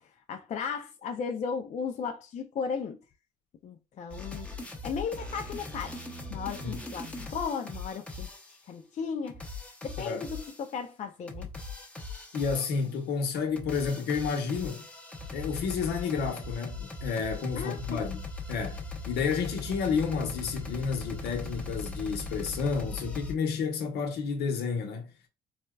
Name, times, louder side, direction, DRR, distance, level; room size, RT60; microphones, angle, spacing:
voice 1, 0.0-3.0 3.6-9.4 9.8-11.5 17.6-18.0, left 6 dB, 45° left, 0.5 m, -36 dB
sound 1, 4.1-8.6 9.3-10.7 11.3-13.0 13.4-23.3, left 3 dB, 5° left, 0.8 m, -40 dB
voice 2, 12.3-14.8 15.3-18.2 18.5-25.1, left 5 dB, 75° left, 1.0 m, -31 dB
4.2 x 2.2 x 2.3 m
cardioid pair, 110°, 17 cm